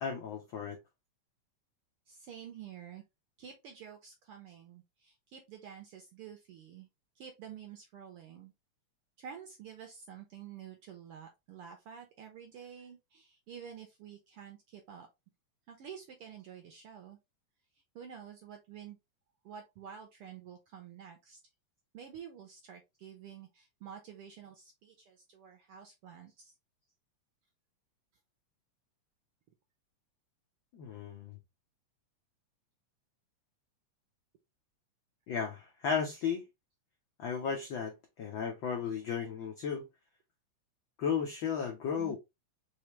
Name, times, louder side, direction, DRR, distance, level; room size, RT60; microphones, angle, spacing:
voice 1, 0.0-0.8 30.7-31.4 35.3-36.4 37.2-39.9 41.0-42.2, left 6 dB, 75° left, 1.1 m, -34 dB
voice 2, 2.1-3.0 3.4-6.9 7.1-8.5 9.2-15.1 15.7-17.2 17.7-19.0 19.4-21.4 21.9-26.5 42.0-42.2, right 8 dB, 70° right, 1.4 m, -49 dB
4.8 x 3.2 x 3.0 m
omnidirectional pair, 3.3 m